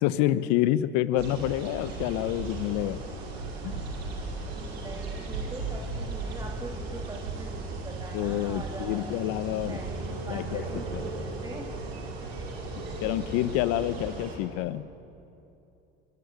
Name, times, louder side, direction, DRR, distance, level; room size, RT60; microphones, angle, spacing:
voice 1, 0.0-3.0 3.6-3.9 8.1-9.8 10.3-11.0 13.0-14.8, left 13 dB, 65° left, 15 dB, 1.1 m, -28 dB
sound 1, 1.2-14.4, right 3 dB, 85° right, 5.4 m, -36 dB
voice 2, 4.5-11.8, right 2 dB, 10° right, 2 dB, 2.3 m, -43 dB
23.5 x 15.5 x 9.9 m, 2.8 s
hypercardioid pair, 80°, 31 cm